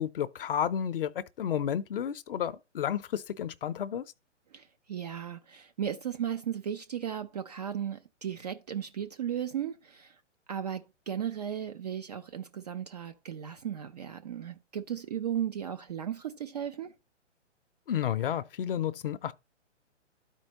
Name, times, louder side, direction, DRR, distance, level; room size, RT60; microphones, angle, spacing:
voice 1, 0.0-4.0 17.9-19.3, left 9 dB, 50° left, 0.6 m, -31 dB
voice 2, 4.5-10.2 10.5-16.9, right 9 dB, 35° right, 0.4 m, -36 dB
12.5 x 4.5 x 2.9 m
figure-of-eight pair, 125°, 37 cm